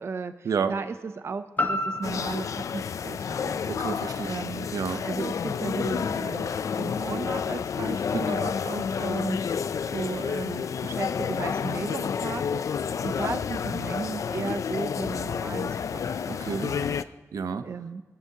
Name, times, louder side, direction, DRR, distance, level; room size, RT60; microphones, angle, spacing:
voice 1, 0.0-3.6 4.2-4.7 5.0-9.4 9.9-12.6 13.0-16.2 16.4-17.0 17.6-18.0, right 4 dB, 45° right, 10 dB, 0.4 m, -35 dB
sound 1, 1.6-5.6 6.1-6.2, left 2 dB, 30° left, 1.3 m, -34 dB
sound 2, 2.0-17.0, left 7 dB, 65° left, 0.3 m, -30 dB
voice 2, 3.7-4.3 4.7-5.0 8.1-8.5 16.3-16.7 17.3-17.6, right 6 dB, 85° right, 10 dB, 0.7 m, -30 dB
22.5 x 11.5 x 2.8 m, 1.3 s
wide cardioid pair, 165°, 6 cm